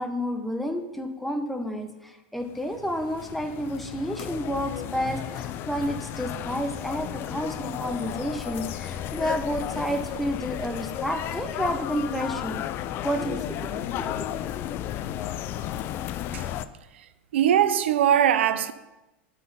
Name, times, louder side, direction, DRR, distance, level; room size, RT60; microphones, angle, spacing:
voice 1, 0.0-12.6 13.0-13.6 14.0-14.3, equal, ahead, 0.9 m, -30 dB
sound 1, 2.4-16.7, left 11 dB, 40° left, 0.4 m, -33 dB
voice 2, 17.3-18.7, right 10 dB, 80° right, 0.6 m, -21 dB
11.5 x 4.3 x 5.5 m
supercardioid pair, 125°, 6 cm